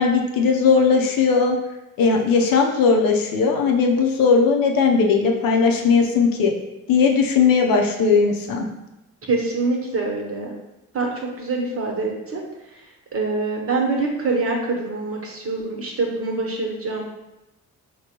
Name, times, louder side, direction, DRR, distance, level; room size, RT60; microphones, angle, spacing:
voice 1, 0.0-1.6 2.0-6.5 6.9-8.7, left 5 dB, 70° left, 2 dB, 0.6 m, -18 dB
voice 2, 9.3-10.6 10.9-12.4 13.1-17.0, right 3 dB, 40° right, 0 dB, 1.0 m, -25 dB
4.4 x 2.2 x 2.9 m, 0.94 s
supercardioid pair, 55°, 35 cm